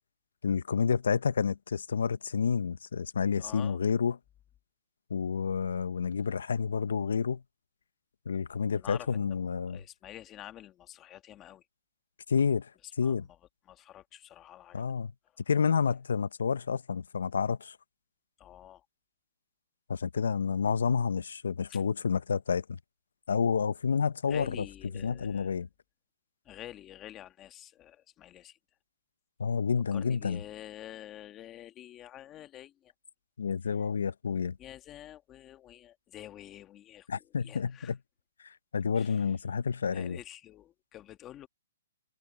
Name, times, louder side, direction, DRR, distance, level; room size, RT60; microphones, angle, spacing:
voice 1, 0.4-4.2 5.1-7.4 8.3-9.8 12.3-12.7 13.0-13.2 14.7-15.1 15.5-17.8 19.9-22.8 23.3-24.6 24.9-25.7 29.4-30.4 33.4-34.6 37.1-38.0 38.4-40.2, left 6 dB, 75° left, 0.8 m, -29 dB
voice 2, 3.4-3.8 8.8-9.3 9.7-11.6 13.0-13.3 13.7-14.8 18.4-18.8 21.7-21.8 24.3-25.5 26.4-28.6 29.9-32.9 34.6-37.1 37.4-37.9 38.9-39.3 39.9-41.5, left 12 dB, 15° left, 1.5 m, -48 dB
hypercardioid pair, 160°, 0 cm